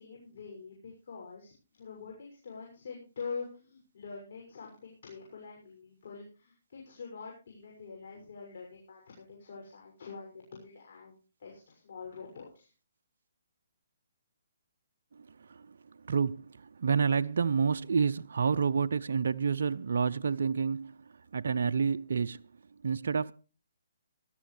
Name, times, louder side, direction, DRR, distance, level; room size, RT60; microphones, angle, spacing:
voice 1, 0.0-12.7, left 5 dB, 60° left, 6.5 m, -45 dB
voice 2, 15.2-15.8 16.0-21.0 21.3-22.4 22.8-23.3, right 6 dB, 70° right, 0.6 m, -29 dB
18.0 x 13.0 x 3.3 m
hypercardioid pair, 150°, 0 cm